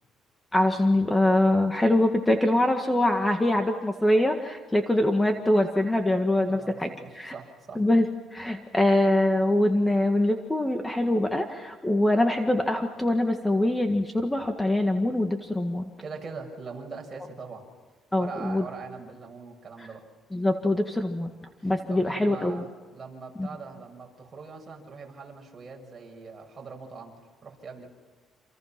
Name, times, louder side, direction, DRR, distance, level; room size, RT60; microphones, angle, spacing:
voice 1, 0.5-7.3 7.8-8.1 8.3-15.9 18.1-18.7 19.8-19.9 20.3-21.3 21.6-22.6 23.4-23.5, left 1 dB, 10° left, 5 dB, 1.8 m, -24 dB
voice 2, 6.5-7.8 16.0-17.7 18.2-20.1 21.6-27.1 27.4-27.9, right 4 dB, 30° right, 1 dB, 6.7 m, -42 dB
28.5 x 28.0 x 6.0 m, 1.4 s
cardioid pair, 120°, 0 cm